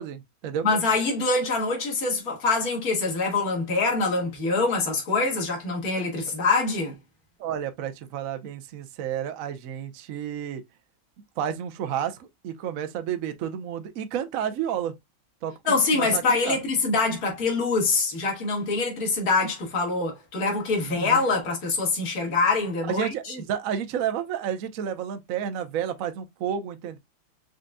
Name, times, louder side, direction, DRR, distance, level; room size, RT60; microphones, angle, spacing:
voice 1, 0.0-0.7 7.4-10.6 11.4-14.9 15.4-16.6 21.0-21.2 22.9-27.0, right 9 dB, 60° right, 0.9 m, -31 dB
voice 2, 0.6-6.9 15.7-23.3, left 3 dB, 50° left, 2.1 m, -24 dB
5.0 x 3.9 x 2.2 m
omnidirectional pair, 2.2 m